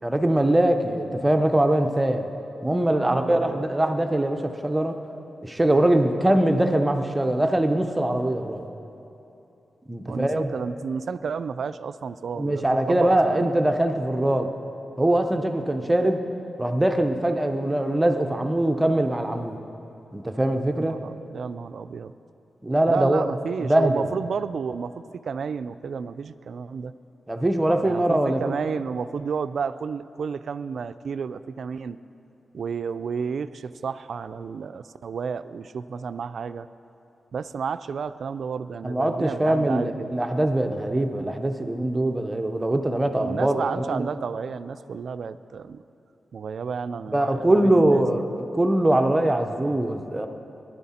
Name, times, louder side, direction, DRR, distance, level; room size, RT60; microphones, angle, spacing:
voice 1, 0.0-2.3 2.6-5.0 5.4-8.6 9.9-10.5 12.4-14.5 15.0-16.2 16.6-19.6 20.1-21.0 22.6-23.3 23.6-24.1 27.3-28.6 38.8-44.1 47.1-50.3, right 1 dB, 15° right, 6 dB, 0.6 m, -22 dB
voice 2, 3.0-3.7 10.0-13.5 20.7-22.1 22.9-26.9 27.8-32.0 32.5-36.7 37.3-40.1 43.2-45.8 46.3-48.0, right 6 dB, 65° right, 13 dB, 0.3 m, -32 dB
18.0 x 11.0 x 4.3 m, 2.9 s
wide cardioid pair, 140°, 0 cm